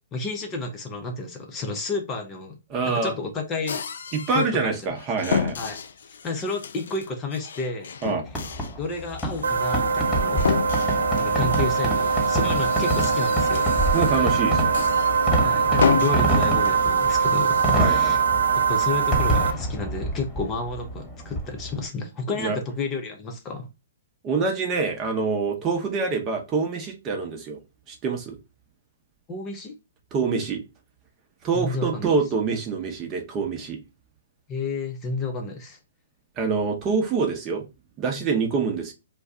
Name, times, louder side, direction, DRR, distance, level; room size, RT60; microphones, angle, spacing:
voice 1, 0.1-2.6 2.8-3.8 4.3-4.8 5.6-5.8 6.2-7.9 8.8-10.5 11.2-13.7 14.1-14.4 15.4-18.2 18.7-23.7 29.3-29.7 31.5-32.1 34.5-35.8, left 3 dB, 25° left, 0.6 m, -31 dB
voice 2, 2.7-3.1 4.1-5.6 8.0-8.2 13.9-14.7 17.8-18.2 22.4-22.6 24.2-27.6 27.9-28.4 30.1-30.6 31.4-33.8 36.4-37.6 38.0-38.9, right 4 dB, 25° right, 0.8 m, -25 dB
sound 1, 3.7-4.5 4.9-14.3 14.7-15.4 15.7-17.8, left 6 dB, 70° left, 0.3 m, -31 dB
Fireworks, 8.3-21.9, right 1 dB, 10° left, 1.3 m, -28 dB
sound 2, 9.4-19.5, right 6 dB, 85° right, 0.3 m, -22 dB
2.5 x 2.2 x 3.6 m
hypercardioid pair, 135°, 0 cm